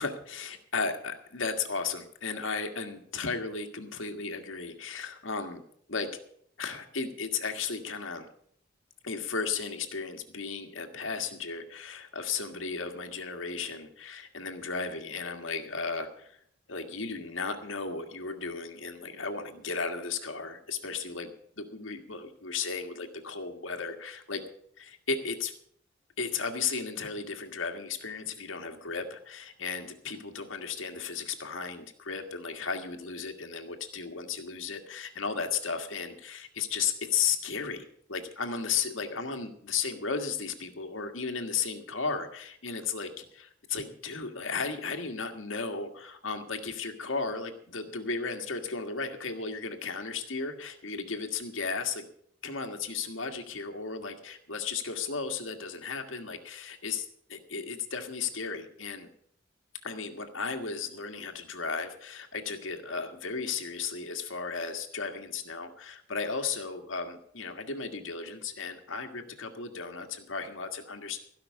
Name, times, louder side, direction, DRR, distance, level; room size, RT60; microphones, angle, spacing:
voice 1, 0.0-5.6 5.9-6.1 6.6-8.3 9.0-16.4 16.7-24.4 24.8-25.5 26.2-52.1 52.4-59.1 59.8-71.2, left 5 dB, 85° left, 5 dB, 1.7 m, -35 dB
16.0 x 5.9 x 8.4 m, 0.65 s
head